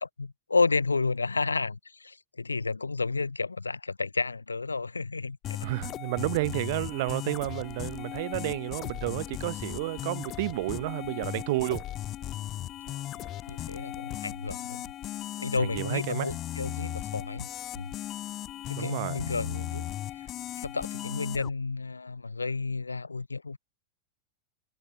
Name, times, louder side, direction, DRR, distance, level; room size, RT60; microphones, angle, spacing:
voice 1, 0.0-5.7 12.9-14.9 15.4-17.5 17.7-17.9 18.7-20.3 20.6-23.6, left 4 dB, 80° left, 1.5 m, -31 dB
sound 1, 5.4-21.5, left 13 dB, 35° left, 3.3 m, -37 dB
voice 2, 5.6-11.8 15.6-16.3 18.8-19.2, right 21 dB, 50° right, 1.1 m, -31 dB
figure-of-eight pair, 90°, 0 cm